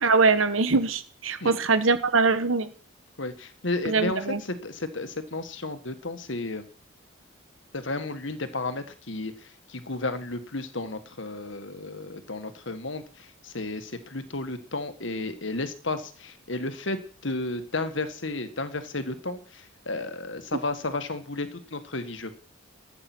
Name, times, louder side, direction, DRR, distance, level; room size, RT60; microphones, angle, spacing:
voice 1, 0.0-2.7 3.8-4.4, right 4 dB, 80° right, 11 dB, 1.3 m, -22 dB
voice 2, 3.2-6.7 7.7-17.0 17.2-22.4, left 2 dB, 65° left, 10 dB, 1.7 m, -33 dB
13.5 x 8.8 x 6.2 m, 0.40 s
head